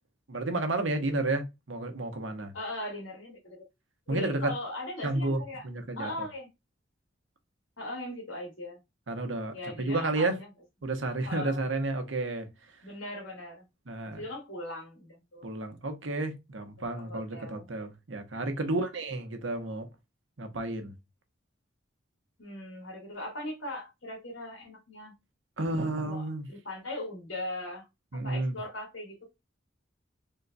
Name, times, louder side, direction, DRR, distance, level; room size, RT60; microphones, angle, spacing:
voice 1, 0.3-2.5 4.1-4.5 5.0-6.3 9.1-10.4 10.8-12.8 13.9-14.2 15.4-19.9 20.4-20.9 25.6-26.5 28.1-28.6, right 2 dB, 80° right, 0.9 m, -31 dB
voice 2, 2.5-3.7 4.1-5.7 6.0-6.5 7.8-8.8 9.5-10.5 11.0-11.6 12.8-13.7 14.1-15.5 16.8-17.7 18.6-18.8 22.4-25.1 26.0-27.9 28.1-29.3, left 1 dB, 85° left, 1.9 m, -39 dB
3.8 x 2.3 x 3.9 m
head